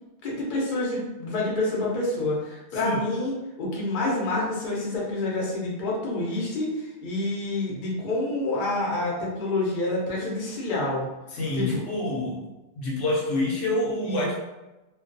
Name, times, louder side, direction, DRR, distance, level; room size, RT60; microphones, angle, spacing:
voice 1, 0.2-3.3 3.6-11.1 11.5-11.8 14.0-14.3, left 2 dB, 45° left, -4 dB, 0.7 m, -28 dB
voice 2, 11.3-12.5 12.8-14.4, left 1 dB, 80° left, -3 dB, 1.0 m, -27 dB
2.4 x 2.3 x 2.4 m, 1.0 s
omnidirectional pair, 1.3 m